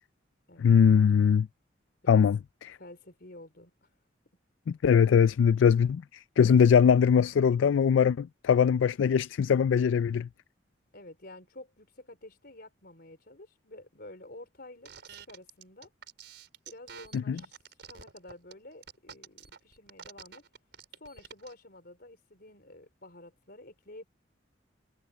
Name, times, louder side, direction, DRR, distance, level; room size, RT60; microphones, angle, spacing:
voice 1, 0.6-1.5 2.1-2.4 4.7-10.3 17.1-17.4, left 7 dB, 85° left, 0.3 m, -22 dB
voice 2, 2.8-3.9 10.9-14.9 15.3-15.9 16.7-17.5 17.8-20.4 21.0-24.0, left 1 dB, 55° left, 4.3 m, -50 dB
sound 1, 14.9-21.5, right 7 dB, 65° right, 4.7 m, -48 dB
head